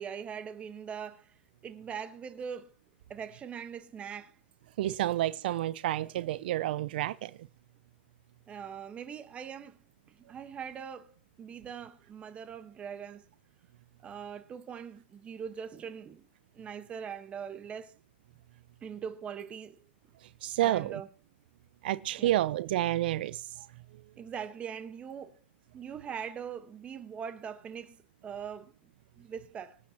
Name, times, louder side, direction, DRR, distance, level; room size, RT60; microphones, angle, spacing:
voice 1, 0.0-1.3 1.6-2.7 3.1-4.4 8.5-9.8 10.1-13.2 14.0-16.3 16.5-17.9 18.8-19.8 20.6-21.1 22.2-22.4 24.2-25.3 25.7-28.9 29.2-29.8, right 7 dB, 20° right, 1.3 m, -41 dB
voice 2, 4.8-7.3 20.4-21.0 21.8-23.7, right 14 dB, 60° right, 0.6 m, -30 dB
25.5 x 8.6 x 3.0 m
hypercardioid pair, 135°, 6 cm